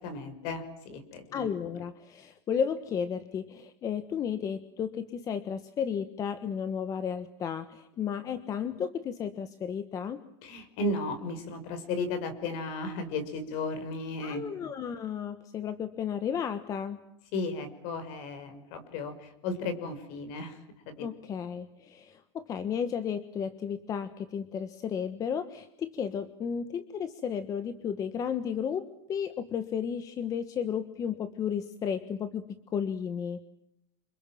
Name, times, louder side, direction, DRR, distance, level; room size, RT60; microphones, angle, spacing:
voice 1, 0.0-1.5 10.4-14.7 17.3-20.6 20.9-21.1, left 3 dB, 50° left, 10 dB, 5.7 m, -35 dB
voice 2, 1.3-10.2 14.2-17.0 21.0-33.4, left 7 dB, 25° left, 11 dB, 1.3 m, -33 dB
29.5 x 26.5 x 7.6 m, 0.79 s
supercardioid pair, 165°, 15 cm